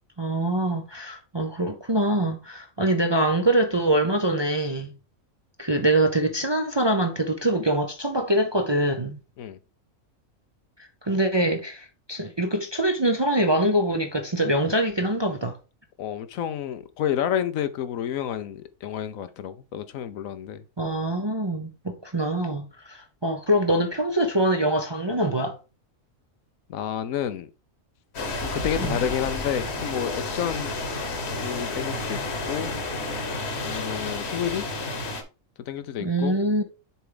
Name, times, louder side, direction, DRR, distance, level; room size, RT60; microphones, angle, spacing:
voice 1, 0.2-4.9 5.6-9.2 11.0-15.6 20.8-25.6 28.8-29.0 36.0-36.6, right 1 dB, 30° right, 0.5 m, -24 dB
voice 2, 16.0-20.6 26.7-27.5 28.4-30.7 31.4-32.7 33.6-34.7 35.7-36.3, left 9 dB, 80° left, 1.1 m, -30 dB
sound 1, 28.1-35.2, left 2 dB, 50° left, 1.4 m, -31 dB
6.9 x 4.5 x 3.8 m
omnidirectional pair, 1.4 m